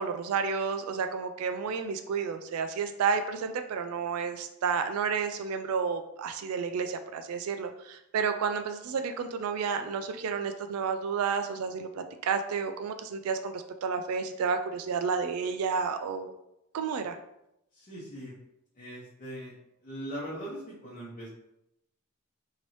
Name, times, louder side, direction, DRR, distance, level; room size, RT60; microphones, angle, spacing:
voice 1, 0.0-16.3 16.7-17.2, right 5 dB, 85° right, 7 dB, 0.3 m, -31 dB
voice 2, 17.7-18.3 18.7-19.5 19.8-21.3, right 1 dB, 40° left, -7 dB, 0.8 m, -40 dB
3.0 x 2.7 x 3.1 m, 0.84 s
head